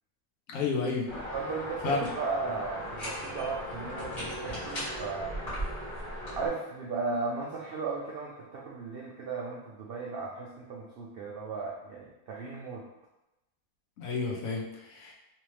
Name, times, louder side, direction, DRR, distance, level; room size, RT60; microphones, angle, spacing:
voice 1, 0.5-1.1 1.8-2.0 14.0-15.1, left 4 dB, 70° left, -2 dB, 1.1 m, -31 dB
sound 1, 1.1-6.5, equal, 25° left, 1.5 m, -37 dB
voice 2, 1.3-5.3 6.4-12.8, right 4 dB, 70° right, -3 dB, 0.5 m, -36 dB
3.4 x 2.9 x 3.1 m, 0.97 s
omnidirectional pair, 1.5 m